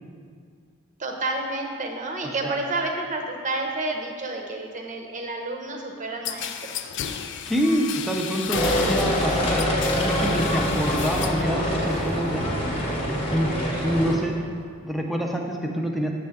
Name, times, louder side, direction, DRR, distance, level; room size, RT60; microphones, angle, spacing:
voice 1, 1.0-6.7 13.3-13.9, right 2 dB, 35° right, 2 dB, 0.8 m, -30 dB
voice 2, 2.2-2.6 7.4-9.7 10.0-12.5 13.3-13.5 13.8-14.4 14.8-16.1, equal, ahead, 1 dB, 0.5 m, -26 dB
sound 1, 6.2-11.5 11.8-12.4, left 8 dB, 55° left, 0.3 m, -33 dB
sound 2, 8.5-14.2, equal, 25° left, 1.0 m, -25 dB
sound 3, 10.3-14.7, right 1 dB, 70° right, 0.7 m, -42 dB
7.7 x 6.5 x 3.5 m, 2.1 s
head